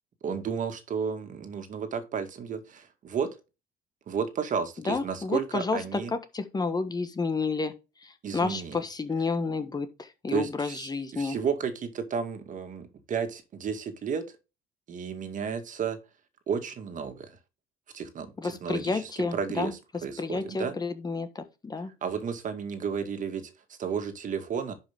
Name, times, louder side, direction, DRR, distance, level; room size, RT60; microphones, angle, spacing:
voice 1, 0.2-3.3 4.1-6.1 8.2-8.8 10.3-14.3 14.9-16.0 16.5-17.3 17.9-20.7 22.0-24.7, right 6 dB, 50° right, 2.0 m, -32 dB
voice 2, 4.8-7.7 8.0-11.4 18.4-19.7 20.2-21.9, left 4 dB, 25° left, 1.4 m, -30 dB
11.0 x 5.5 x 3.6 m
cardioid pair, 110°, 17 cm